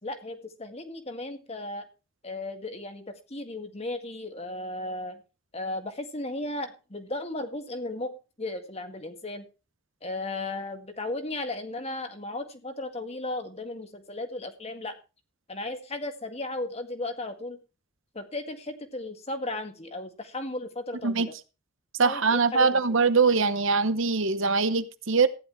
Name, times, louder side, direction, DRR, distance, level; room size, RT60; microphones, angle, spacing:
voice 1, 0.0-1.8 2.2-5.2 5.5-9.5 10.0-14.9 15.5-17.6 18.1-21.3 22.0-22.8, left 2 dB, 30° left, 1.8 m, -35 dB
voice 2, 22.0-25.3, right 4 dB, 65° right, 0.9 m, -23 dB
15.0 x 10.5 x 3.2 m
head